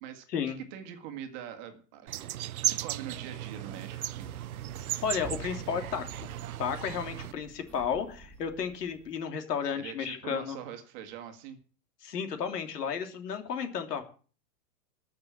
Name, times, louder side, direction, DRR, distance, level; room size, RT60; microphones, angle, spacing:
voice 1, 0.0-4.3 9.7-11.6, right 9 dB, 30° right, 6 dB, 1.7 m, -43 dB
sound 1, 2.1-7.3, right 13 dB, 60° right, 0.8 m, -36 dB
sound 2, 3.7-9.3, right 2 dB, 5° left, 2.8 m, -50 dB
voice 2, 5.0-6.0 6.6-10.6 12.0-14.0, left 7 dB, 75° left, 7 dB, 3.1 m, -33 dB
13.5 x 6.7 x 8.8 m, 0.40 s
hypercardioid pair, 170°, 48 cm